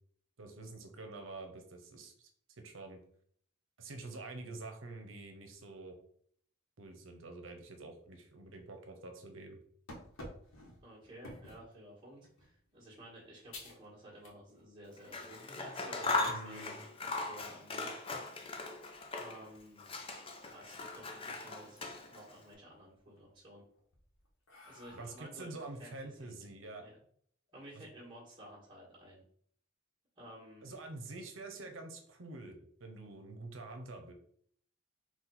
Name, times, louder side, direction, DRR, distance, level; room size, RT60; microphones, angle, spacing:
voice 1, 0.4-2.3 2.6-3.0 3.8-6.0 6.8-9.6 16.2-16.8 24.9-26.8 27.7-27.8 30.6-34.1, right 2 dB, 75° right, 5 dB, 0.8 m, -47 dB
sound 1, 9.9-11.7 12.2-12.6 13.0-13.1 13.5-13.9 14.2-14.7 15.0-15.2 15.7-16.4 18.4-19.1 19.5-19.6 20.0-20.1 20.4-21.2 21.6-22.2 22.6-23.2 23.8-25.5, left 1 dB, 85° left, 1.0 m, -50 dB
voice 2, 10.8-17.9 19.1-19.9 20.4-21.8 22.1-23.6 24.6-25.9 26.2-26.4 26.8-26.9 27.5-29.2 30.2-30.7, right 1 dB, 25° right, -10 dB, 1.5 m, -53 dB
Scissors, 15.0-19.5 19.8-22.3, left 3 dB, 30° left, 0.6 m, -39 dB
4.2 x 2.3 x 4.2 m, 0.62 s
head